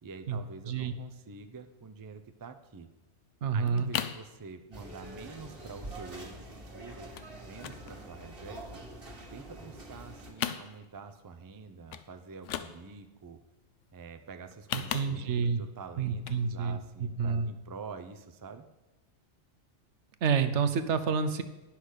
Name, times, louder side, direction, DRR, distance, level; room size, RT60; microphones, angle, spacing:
voice 1, 0.0-2.9 3.5-7.1 7.4-8.8 9.3-13.4 13.9-18.6, right 5 dB, 30° right, 8 dB, 0.4 m, -47 dB
sound 1, 3.1-3.2 3.4-4.3 4.6-5.0 5.3-5.4 5.6-5.8 6.2-6.7 7.1-7.3 7.6-8.9 9.2-10.0 10.3-11.1 11.5-11.6 11.9-12.1 12.3-13.1 14.4-15.5 16.1-16.4 16.8-16.9, left 10 dB, 85° left, 0.9 m, -37 dB
voice 2, 3.4-3.9 14.7-15.6 16.0-16.8 17.2-17.5 20.2-21.4, right 6 dB, 75° right, 10 dB, 1.0 m, -28 dB
sound 2, 4.7-10.3, right 1 dB, 50° right, 1.7 m, -45 dB
10.0 x 5.8 x 6.5 m, 1.0 s
omnidirectional pair, 1.2 m